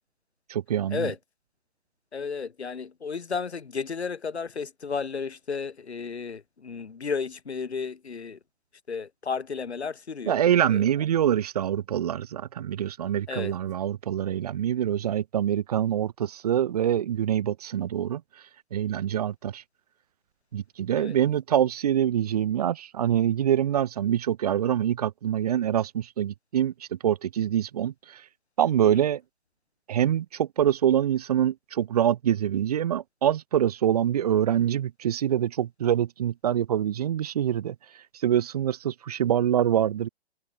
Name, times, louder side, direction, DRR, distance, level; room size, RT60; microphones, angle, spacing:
voice 1, 0.5-1.1 10.3-18.2 18.7-19.6 20.5-28.2 28.6-29.2 29.9-37.8 38.1-40.1, right 10 dB, 35° right, 1.0 m, -25 dB
voice 2, 2.1-8.4 8.9-10.4 10.7-10.8 13.3-13.5 21.0-21.2 28.8-29.0, left 5 dB, 85° left, 5.2 m, -33 dB
hypercardioid pair, 160°, 32 cm